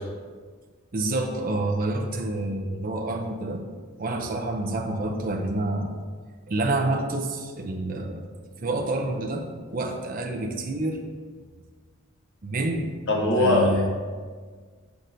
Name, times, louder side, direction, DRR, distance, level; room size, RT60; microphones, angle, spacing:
voice 1, 0.9-3.6 4.0-5.9 6.5-8.3 8.6-9.5 9.7-11.0 12.4-12.9 13.4-13.9, right 2 dB, 40° right, 2 dB, 0.5 m, -28 dB
voice 2, 13.1-13.9, left 1 dB, 55° left, -1 dB, 0.8 m, -21 dB
6.2 x 5.8 x 2.6 m, 1.5 s
head